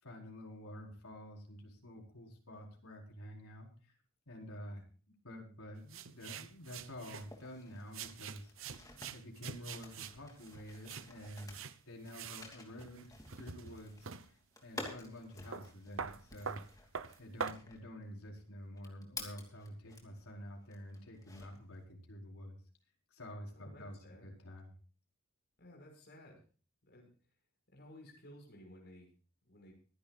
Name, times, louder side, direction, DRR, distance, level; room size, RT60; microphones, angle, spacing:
voice 1, 0.0-3.7 4.3-8.5 9.1-11.6 11.9-14.4 14.6-16.9 17.2-22.6 23.1-24.7, equal, 80° left, -1 dB, 4.7 m, -49 dB
sound 1, 5.9-7.3 7.9-11.8 12.1-12.5 12.8-14.3 14.9-15.0 15.2-17.5, right 6 dB, 65° right, 0.9 m, -45 dB
sound 2, 6.9-20.3 20.7-21.8, left 2 dB, 15° left, 2.8 m, -52 dB
voice 2, 23.5-24.3 25.6-26.4 26.9-27.1 27.7-29.1 29.4-29.7, left 1 dB, 50° left, 1 dB, 6.0 m, -55 dB
24.5 x 11.0 x 2.5 m, 0.39 s
head